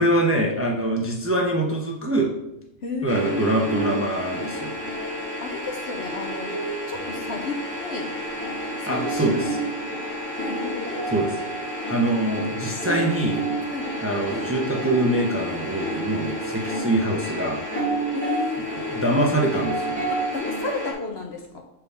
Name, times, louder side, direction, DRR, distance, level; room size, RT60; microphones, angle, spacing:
voice 1, 0.0-2.3 3.0-4.7 8.8-9.5 11.1-11.3 11.6-13.4 14.0-17.6 18.9-20.0, right 1 dB, 15° right, -1 dB, 0.6 m, -24 dB
voice 2, 2.8-3.6 5.4-6.6 6.9-8.2 8.8-9.4 10.4-11.0 13.6-14.0 18.1-19.2 20.1-21.6, left 4 dB, 60° left, 3 dB, 0.8 m, -32 dB
sound 1, 3.1-20.9, right 1 dB, 10° left, 1.8 m, -30 dB
6.8 x 4.6 x 3.4 m, 0.86 s
omnidirectional pair, 1.4 m